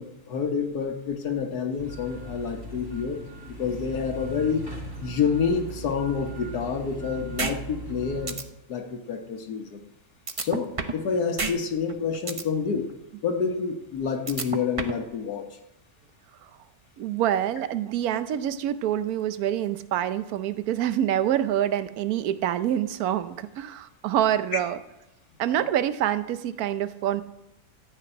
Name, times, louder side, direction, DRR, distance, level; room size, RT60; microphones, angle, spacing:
voice 1, 0.0-3.2 3.6-4.6 5.0-8.4 8.7-9.8 10.4-12.9 13.2-15.6, left 6 dB, 90° left, 3 dB, 1.6 m, -28 dB
sound 1, 1.8-8.3, right 2 dB, 15° right, 2.6 m, -39 dB
sound 2, 7.4-7.5 7.9-8.0 8.3-8.4 10.3-11.0 11.4-11.5 11.9-12.4 14.3-15.0, right 4 dB, 35° right, 0.5 m, -29 dB
voice 2, 17.0-24.8 25.4-27.2, right 11 dB, 75° right, 13 dB, 1.2 m, -26 dB
13.5 x 5.9 x 8.8 m, 0.93 s
omnidirectional pair, 1.6 m